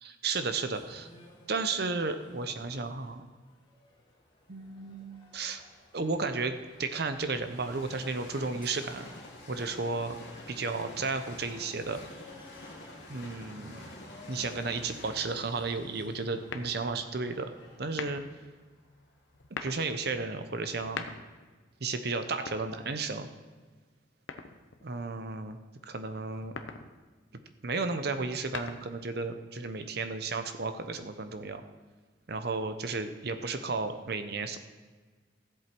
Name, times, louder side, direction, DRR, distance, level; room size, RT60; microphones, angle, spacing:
voice 1, 0.0-1.1 1.5-3.3 4.5-5.6 5.9-6.5 6.8-9.1 9.5-10.2 10.5-12.0 13.1-13.8 14.3-17.5 17.8-18.2 19.6-21.1 21.8-23.3 24.8-25.6 25.9-26.5 27.6-31.6 32.3-34.6, right 3 dB, 55° right, 9 dB, 0.7 m, -33 dB
boxe match, 0.6-17.8, left 2 dB, 25° left, 1.6 m, -56 dB
Train, 4.1-20.1 20.6-20.7, left 1 dB, 60° left, 2.4 m, -50 dB
sound 1, 16.5-17.1 17.9-18.4 19.3-19.9 20.7-21.5 22.3-23.2 24.3-24.9 26.3-26.9 28.2-29.1, left 5 dB, 80° left, 0.8 m, -41 dB
14.0 x 8.0 x 4.5 m, 1.4 s
head